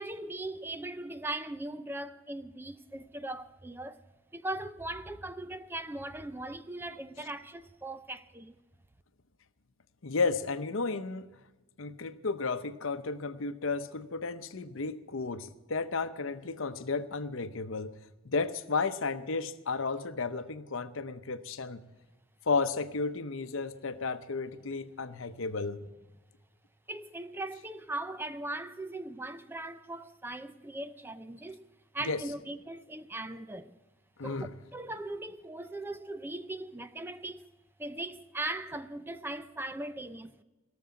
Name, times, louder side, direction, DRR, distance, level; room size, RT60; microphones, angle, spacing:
voice 1, 0.0-4.0 4.3-8.6 26.9-31.6 31.9-33.7 34.2-37.4 37.8-40.4, right 2 dB, 10° right, 0.4 m, -39 dB
voice 2, 10.0-11.3 11.8-17.9 18.2-21.8 22.5-25.9 32.0-32.2 34.2-34.5, left 4 dB, 70° left, 0.8 m, -33 dB
17.0 x 7.0 x 9.4 m
head